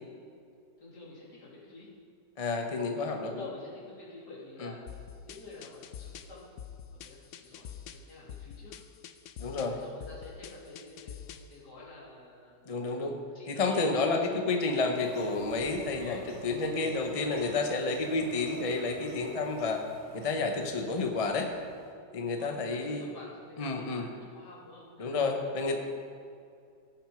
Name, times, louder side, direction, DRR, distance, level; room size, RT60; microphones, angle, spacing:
voice 1, 0.8-1.9 3.2-6.6 6.9-8.8 9.6-12.9 13.3-13.8 14.5-14.7 15.9-16.2 17.0-18.0 22.3-25.8, left 3 dB, 65° left, -6 dB, 3.2 m, -48 dB
voice 2, 2.4-3.4 4.6-4.7 9.4-9.8 12.7-13.2 13.5-19.8 20.1-21.5 22.1-23.1 23.6-24.1 25.0-25.7, left 3 dB, 35° left, 3 dB, 0.6 m, -30 dB
sound 1, 4.9-11.6, left 8 dB, 85° left, 0.6 m, -46 dB
sound 2, 14.9-21.9, right 1 dB, 80° right, 3.9 m, -48 dB
16.0 x 6.4 x 5.1 m, 2.4 s
omnidirectional pair, 1.9 m